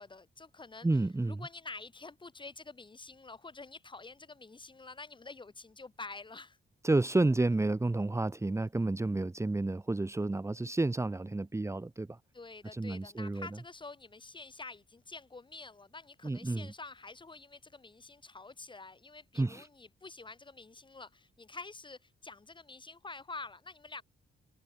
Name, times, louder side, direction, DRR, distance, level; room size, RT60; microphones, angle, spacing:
voice 1, 0.0-0.9 1.2-6.6 12.3-24.0, left 3 dB, 25° left, 6.1 m, -48 dB
voice 2, 0.8-1.4 6.8-12.2 12.7-13.5 16.2-16.7 19.3-19.7, right 2 dB, 15° right, 1.7 m, -30 dB
wide cardioid pair, 140°, 21 cm